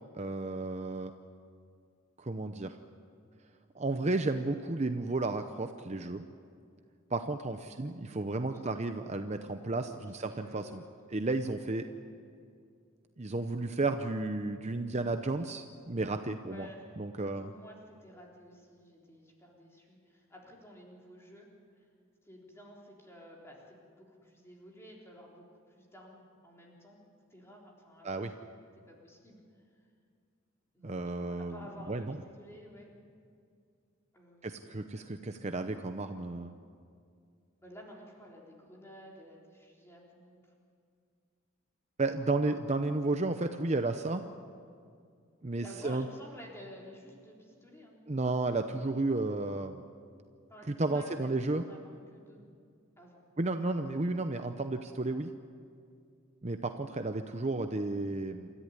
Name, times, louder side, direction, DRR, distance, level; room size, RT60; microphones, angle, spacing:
voice 1, 0.1-1.1 2.2-2.8 3.8-6.2 7.1-10.8 11.1-11.9 13.2-16.7 17.0-17.5 28.0-28.3 30.8-31.6 31.9-32.2 34.4-36.5 42.0-44.2 45.4-46.1 48.1-49.8 50.7-51.6 53.4-55.3 56.4-58.5, right 2 dB, 35° right, 7 dB, 0.7 m, -33 dB
voice 2, 8.4-8.9 9.8-10.9 11.7-12.4 16.5-16.8 17.1-21.5 21.8-21.9 22.2-27.0 27.3-28.3 28.9-29.6 30.7-32.9 34.1-34.8 37.6-40.5 45.6-48.0 50.5-52.4 53.0-53.2, left 1 dB, 10° left, -2 dB, 3.9 m, -53 dB
28.0 x 14.0 x 9.7 m, 2.3 s
head